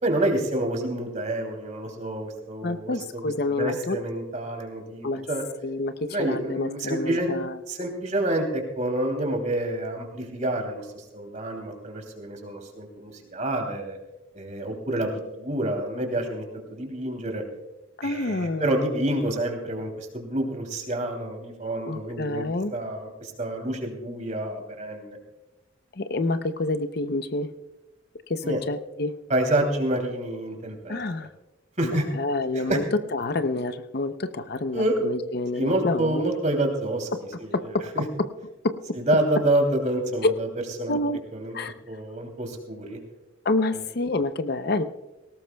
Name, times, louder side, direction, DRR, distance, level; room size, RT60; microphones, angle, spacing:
voice 1, 0.0-5.4 6.1-7.3 7.7-14.0 14.3-17.4 18.0-22.4 22.7-25.2 28.4-28.6 29.3-31.0 31.8-32.1 32.5-32.8 34.7-35.0 35.6-37.1 37.4-38.0 39.0-40.5 40.8-41.0 41.3-41.6 41.9-43.0 43.7-43.8, right 1 dB, 35° right, 3 dB, 2.9 m, -28 dB
voice 2, 2.6-4.0 5.0-5.3 5.6-7.6 18.0-18.8 21.9-22.7 25.9-27.5 28.3-29.2 30.9-31.3 31.9-32.8 33.1-36.3 37.5-38.8 40.9-41.2 41.5-41.7 43.4-44.8, left 2 dB, 50° left, 10 dB, 0.6 m, -28 dB
19.0 x 18.0 x 2.3 m, 1.0 s
head